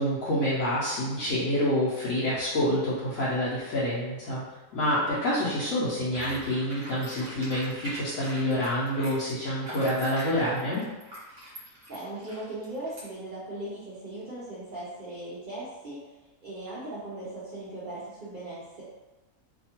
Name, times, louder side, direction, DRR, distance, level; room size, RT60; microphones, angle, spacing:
voice 1, 0.0-4.4 4.7-10.8, equal, 65° left, -9 dB, 1.0 m, -27 dB
sound 1, 6.1-13.0, equal, 45° right, 0.9 m, -43 dB
voice 2, 11.9-16.1 16.4-18.8, right 1 dB, 70° right, -9 dB, 0.4 m, -38 dB
2.7 x 2.3 x 2.8 m, 1.1 s
omnidirectional pair, 1.6 m